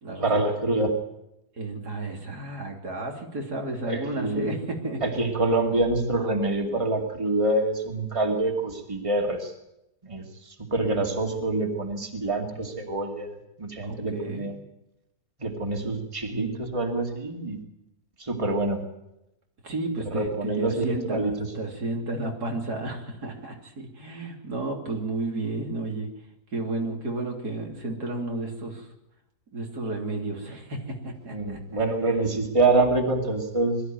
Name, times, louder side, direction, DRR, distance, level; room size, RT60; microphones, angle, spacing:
voice 1, 0.2-0.9 3.8-4.5 5.0-9.5 10.0-10.2 10.7-13.3 13.6-14.5 15.4-17.6 18.2-18.8 20.1-21.3 31.3-33.8, right 2 dB, 20° right, 2 dB, 2.5 m, -26 dB
voice 2, 1.6-5.0 13.9-14.5 19.6-26.1 26.5-28.9 29.5-31.6, right 2 dB, 85° right, 1 dB, 3.6 m, -32 dB
22.0 x 13.5 x 9.3 m, 0.86 s
omnidirectional pair, 1.6 m